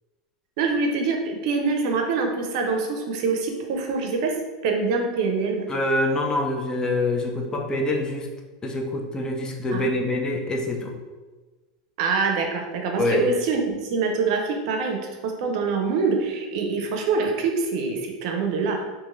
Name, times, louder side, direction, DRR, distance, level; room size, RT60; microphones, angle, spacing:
voice 1, 0.6-4.3 4.6-5.6 9.7-9.8 12.0-18.8, right 4 dB, 65° right, 2 dB, 0.5 m, -25 dB
voice 2, 5.7-8.3 8.6-10.9 13.0-13.2, left 1 dB, 20° left, 1 dB, 0.4 m, -25 dB
3.0 x 2.5 x 2.4 m, 1.2 s
hypercardioid pair, 105°, 3 cm